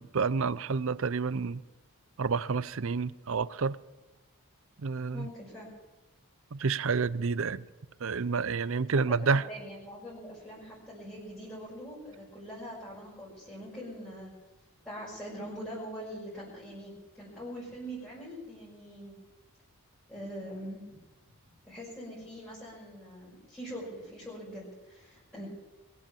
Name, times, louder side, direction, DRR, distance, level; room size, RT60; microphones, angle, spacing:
voice 1, 0.0-1.6 2.2-3.8 4.8-5.3 6.5-7.6 8.0-9.5, right 5 dB, 60° right, 0.6 m, -29 dB
voice 2, 5.1-5.7 9.2-14.3 14.8-19.1 20.1-20.9 21.7-25.5, equal, 10° left, 5.7 m, -43 dB
22.5 x 8.3 x 7.2 m
head